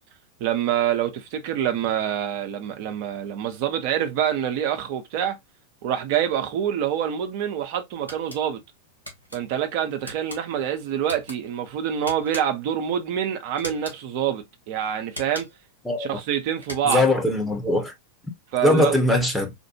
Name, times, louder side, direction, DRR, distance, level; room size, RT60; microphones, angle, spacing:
voice 1, 0.4-5.4 5.8-8.6 9.3-15.5 16.0-17.0 18.5-19.0, right 9 dB, 45° right, 0.9 m, -26 dB
sound 1, 8.1-8.4 9.1-9.4 10.0-10.4 11.0-11.4 12.1-12.7 13.6-14.0 15.1-15.7 16.6-17.2, equal, 85° left, 1.4 m, -39 dB
voice 2, 16.8-17.9 18.6-19.5, left 2 dB, 5° left, 1.2 m, -21 dB
4.3 x 2.5 x 2.9 m
figure-of-eight pair, 90°, 0 cm